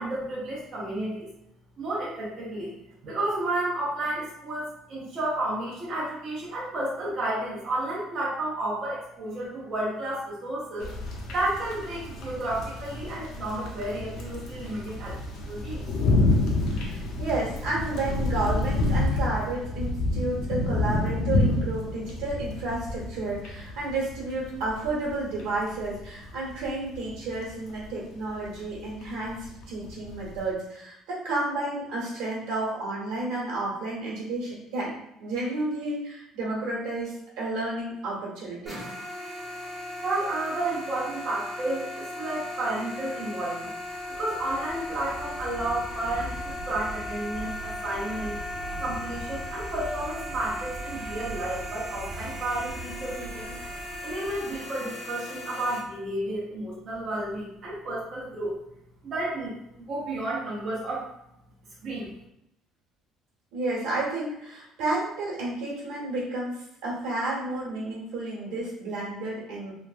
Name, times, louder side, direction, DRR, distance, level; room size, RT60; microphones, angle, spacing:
voice 1, 0.0-1.3 1.8-2.7 3.0-10.9 11.3-15.1 15.4-15.9 40.0-43.7 44.1-48.4 48.8-53.5 54.0-58.5 59.0-61.1 61.8-62.1, right 1 dB, 40° right, -7 dB, 0.7 m, -31 dB
sound 1, 10.8-30.5, left 2 dB, 60° left, 0.5 m, -29 dB
voice 2, 16.7-34.9 35.2-38.8 63.5-66.6 66.8-69.7, right 2 dB, 80° right, -4 dB, 1.1 m, -31 dB
sound 2, 38.7-55.8, left 1 dB, 10° right, 0.7 m, -37 dB
sound 3, 43.8-54.9, right 2 dB, 55° right, 0.3 m, -41 dB
3.1 x 2.1 x 2.4 m, 0.80 s
cardioid pair, 165°, 0 cm